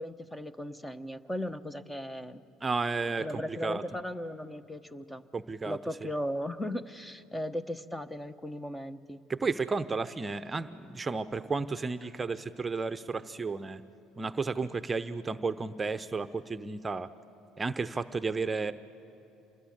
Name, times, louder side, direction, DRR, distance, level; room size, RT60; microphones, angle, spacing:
voice 1, 0.0-2.4 3.2-5.3 5.6-9.2, equal, 10° left, 13 dB, 1.1 m, -37 dB
voice 2, 2.6-3.8 5.3-5.8 9.3-13.8 14.2-17.1 17.6-18.7, right 4 dB, 25° right, 11 dB, 0.8 m, -32 dB
27.0 x 20.0 x 8.6 m, 2.9 s
hypercardioid pair, 60°, 0 cm